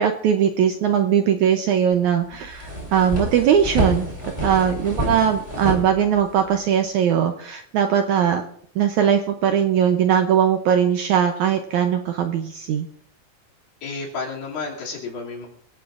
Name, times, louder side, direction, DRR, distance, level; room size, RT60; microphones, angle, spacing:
voice 1, 0.0-4.1 4.4-8.4 8.7-12.9, right 8 dB, 80° right, 6 dB, 1.7 m, -20 dB
sound 1, 1.9-2.0 2.3-6.5, equal, 10° right, 3.5 m, -28 dB
voice 2, 4.4-4.7 13.8-15.5, left 4 dB, 70° left, -4 dB, 4.4 m, -32 dB
24.5 x 17.0 x 2.5 m, 0.67 s
omnidirectional pair, 4.4 m